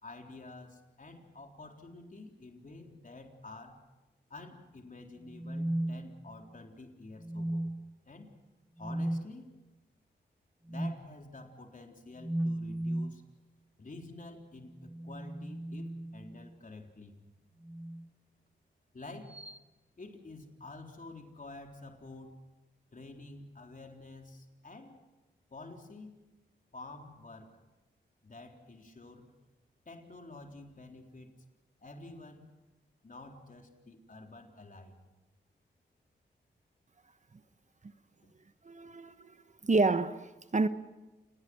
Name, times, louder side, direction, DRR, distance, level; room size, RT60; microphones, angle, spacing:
voice 1, 0.0-3.8 4.3-7.7 8.0-8.3 8.8-9.5 10.7-13.2 13.8-17.2 18.9-19.4 20.0-22.4 22.9-25.0 25.5-26.2 26.7-27.6 28.2-29.3 29.9-31.3 31.8-32.4 33.0-35.0, left 2 dB, 45° left, 4.0 m, -49 dB
sound 1, 5.3-6.6 7.2-8.0 8.8-9.3 10.7-11.0 12.2-13.2 14.7-16.6 17.6-18.1 19.3-19.6, right 1 dB, 5° right, 0.9 m, -36 dB
voice 2, 38.6-39.1 39.6-40.7, right 3 dB, 40° right, 1.2 m, -28 dB
29.0 x 19.5 x 6.4 m
cardioid pair, 50°, 20 cm